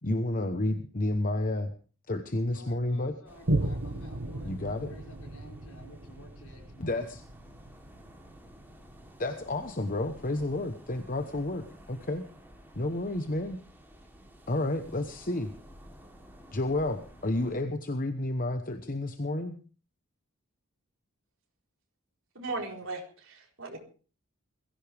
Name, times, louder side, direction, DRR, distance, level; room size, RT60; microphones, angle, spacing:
voice 1, 0.0-1.7 2.1-3.1 4.4-4.9 6.8-7.2 9.2-12.2 12.7-13.6 14.5-15.5 16.5-19.6, left 2 dB, 40° left, 7 dB, 1.1 m, -31 dB
voice 2, 2.3-7.1, left 1 dB, 90° left, 1 dB, 6.2 m, -53 dB
sound 1, 3.3-17.6, equal, 10° right, 3.3 m, -53 dB
Boom, 3.5-10.4 10.9-11.0, right 1 dB, 85° right, 1.7 m, -36 dB
voice 3, 22.3-23.8, right 3 dB, 60° right, 0 dB, 4.5 m, -37 dB
21.5 x 15.5 x 3.5 m, 0.38 s
head